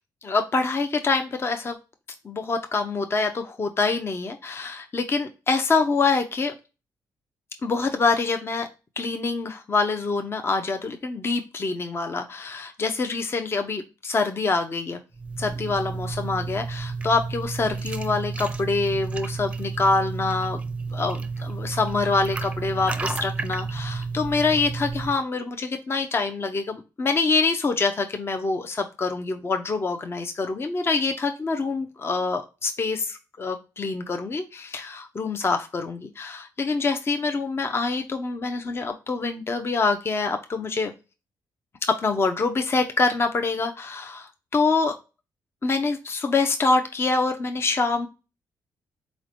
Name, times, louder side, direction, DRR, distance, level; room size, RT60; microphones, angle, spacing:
voice 1, 0.2-1.8 2.2-6.5 7.6-8.7 9.0-15.0 15.4-20.6 20.9-40.9 41.8-44.9 45.6-48.1, left 3 dB, 35° left, 6 dB, 0.5 m, -25 dB
sound 1, 15.1-25.2, right 4 dB, 15° right, 0.5 m, -31 dB
4.1 x 3.1 x 2.4 m, 0.30 s
cardioid pair, 75°, 7 cm